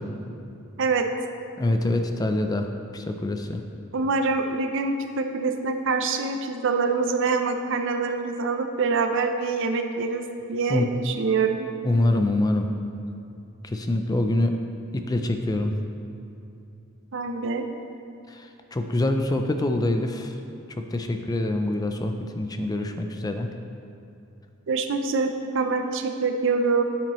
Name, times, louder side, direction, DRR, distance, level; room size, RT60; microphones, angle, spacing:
voice 1, 1.6-2.7 2.9-3.6 10.7-10.9 11.8-12.7 13.6-14.6 14.9-15.7 18.3-20.4 20.9-23.5, left 1 dB, 20° left, 5 dB, 0.4 m, -25 dB
voice 2, 3.9-11.7 17.1-17.7 24.7-26.8, right 4 dB, 60° right, 6 dB, 0.6 m, -25 dB
8.9 x 8.7 x 3.1 m, 2.7 s
head